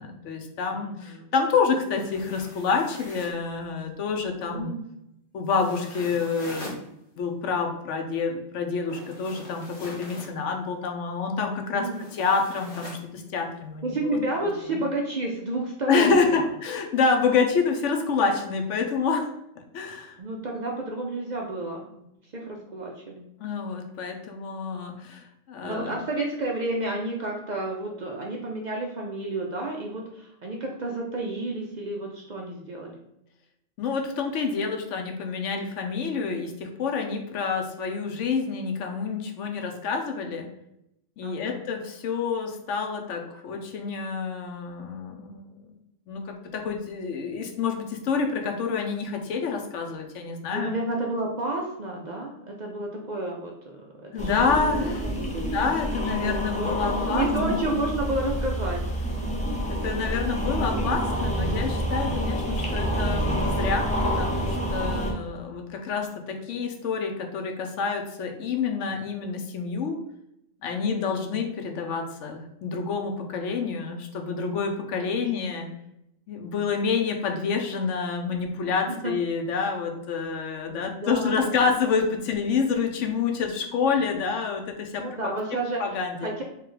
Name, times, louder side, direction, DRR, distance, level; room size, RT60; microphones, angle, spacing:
voice 1, 0.0-4.7 5.3-6.8 7.2-14.2 14.6-14.8 15.9-20.2 23.4-25.9 33.8-40.5 41.2-45.8 46.1-50.7 54.1-55.0 55.5-57.6 59.7-70.0 70.6-75.7 76.3-85.0 85.8-86.3, left 5 dB, 80° left, 3 dB, 1.0 m, -28 dB
voice 2, 0.7-1.3 4.4-4.8 11.6-12.1 13.8-16.4 20.2-22.0 22.3-23.2 25.6-33.0 41.2-41.6 50.5-55.6 56.0-58.8 62.1-62.4 70.8-71.2 75.0-75.1 78.9-79.1 80.7-81.7 85.0-86.4, right 2 dB, 50° right, 0 dB, 0.6 m, -31 dB
sound 1, 1.9-3.4 5.4-6.8 8.9-10.3 11.9-13.0, left 1 dB, 50° left, 1.5 m, -43 dB
sound 2, 54.2-65.1, equal, 10° left, 0.5 m, -28 dB
3.3 x 3.0 x 3.8 m, 0.82 s
omnidirectional pair, 1.2 m